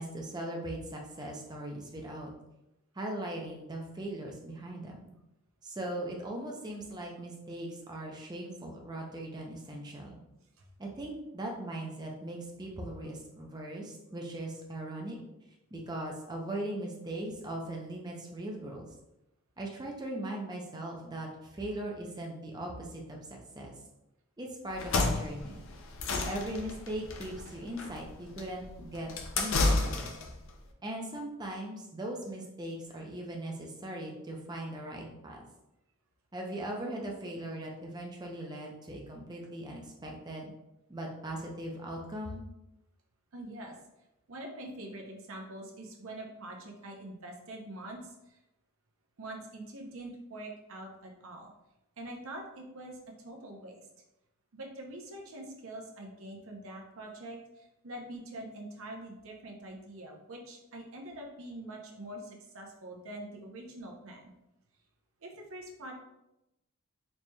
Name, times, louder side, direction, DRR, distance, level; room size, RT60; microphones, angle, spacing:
voice 1, 0.0-2.3 2.9-5.1 5.6-10.2 10.8-15.2 15.7-18.9 19.6-23.2 23.6-23.7 24.4-25.6 26.2-30.1 30.8-35.4 36.3-40.5 40.9-42.4, right 1 dB, 20° right, 0 dB, 0.5 m, -39 dB
sound 1, 24.7-30.4, left 3 dB, 60° left, 0.5 m, -31 dB
voice 2, 43.3-43.8 44.3-48.4 49.2-51.5 52.0-53.0 53.2-53.9 54.5-64.3 65.2-65.9, right 1 dB, 65° right, 1 dB, 0.7 m, -44 dB
4.1 x 3.1 x 2.2 m, 0.90 s
head